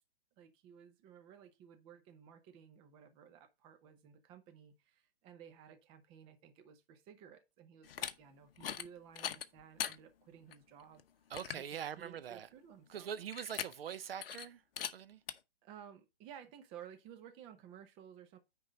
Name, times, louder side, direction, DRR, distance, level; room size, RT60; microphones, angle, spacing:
voice 1, 0.4-11.0 11.6-13.1 15.6-18.4, right 8 dB, 15° right, 0.8 m, -56 dB
sound 1, 7.8-8.1 8.6-8.9 9.2-10.0 10.5-10.6 11.0-11.1 11.3-11.7 13.3-14.0 14.2-14.5 14.8-14.9 15.3-15.4, left 9 dB, 55° left, 0.9 m, -40 dB
voice 2, 11.3-12.5 12.9-14.6 14.9-15.2, right 8 dB, 60° right, 0.7 m, -43 dB
9.5 x 3.8 x 5.2 m
hypercardioid pair, 150°, 33 cm